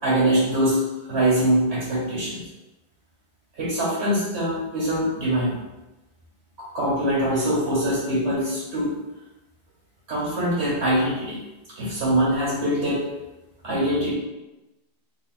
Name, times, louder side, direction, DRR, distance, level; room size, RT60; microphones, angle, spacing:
voice 1, 0.0-0.8 1.1-2.4 3.6-5.6 6.7-9.0 10.1-11.4 11.8-13.0 13.6-14.1, right 1 dB, 80° right, -7 dB, 1.8 m, -23 dB
3.5 x 3.1 x 2.3 m, 1.0 s
omnidirectional pair, 1.1 m